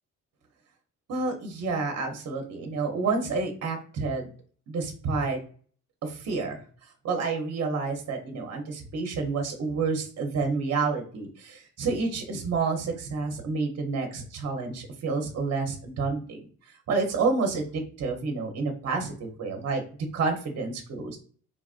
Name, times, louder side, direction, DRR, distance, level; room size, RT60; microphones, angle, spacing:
voice 1, 1.1-4.3 4.7-5.4 6.0-6.6 7.0-16.4 16.9-19.8 20.1-21.2, right 4 dB, 55° right, 3 dB, 0.8 m, -29 dB
3.9 x 2.4 x 2.4 m, 0.43 s
cardioid pair, 90°, 30 cm